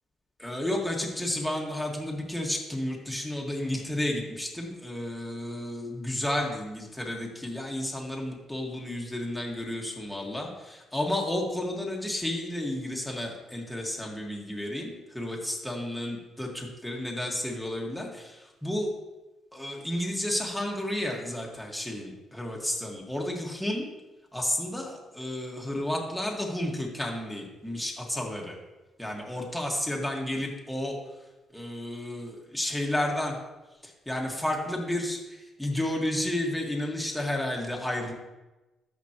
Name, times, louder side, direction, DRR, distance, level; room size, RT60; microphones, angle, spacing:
voice 1, 0.4-18.9 19.5-23.9 24.3-28.6 29.0-31.0 31.5-33.4 33.8-38.1, left 1 dB, 5° left, -1 dB, 1.8 m, -32 dB
13.5 x 5.2 x 3.0 m, 1.1 s
cardioid pair, 90°, 0 cm